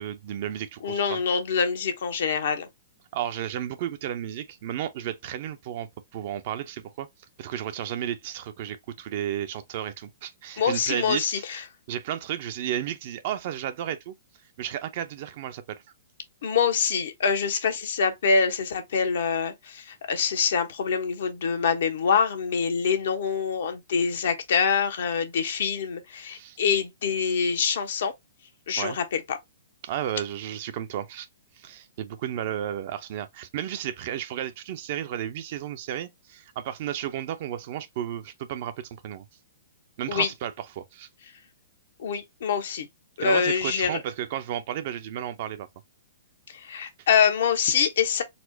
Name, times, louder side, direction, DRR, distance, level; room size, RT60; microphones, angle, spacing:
voice 1, 0.0-1.2 3.1-7.1 7.4-11.3 11.9-14.1 14.6-15.8 26.3-26.6 28.8-29.0 29.8-31.3 31.5-39.3 40.0-40.5 40.8-41.1 43.2-45.7 47.0-47.1, right 10 dB, 50° right, 0.6 m, -33 dB
voice 2, 0.8-2.7 10.6-11.6 16.4-28.1 28.7-29.4 40.1-40.3 42.0-42.9 43.2-44.0 46.5-48.2, left 6 dB, 65° left, 0.9 m, -25 dB
4.2 x 2.1 x 2.7 m
hypercardioid pair, 120°, 0 cm